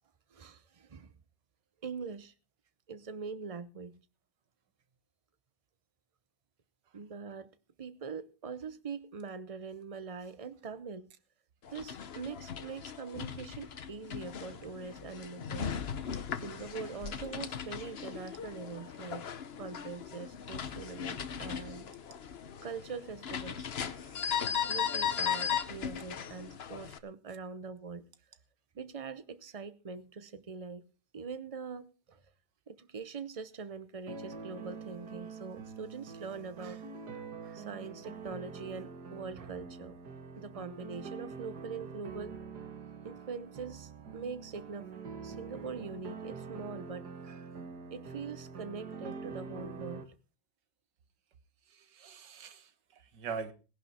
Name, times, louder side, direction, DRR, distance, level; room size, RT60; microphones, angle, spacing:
voice 1, 0.3-1.1 1.8-2.3 2.9-4.0 6.9-7.5 7.8-11.1 11.7-16.1 16.4-19.3 19.6-21.9 22.6-23.7 24.7-28.1 28.8-32.2 32.7-36.9 37.4-40.0 40.4-42.4 43.0-44.9 45.2-47.5 47.9-50.1, right 5 dB, 50° right, 0.4 m, -43 dB
sound 1, 11.6-27.0, left 8 dB, 45° left, 0.9 m, -37 dB
sound 2, 34.1-50.0, right 5 dB, 65° right, 2.1 m, -45 dB
voice 2, 51.7-53.5, right 5 dB, 80° right, 1.8 m, -43 dB
17.5 x 11.0 x 4.3 m
omnidirectional pair, 1.8 m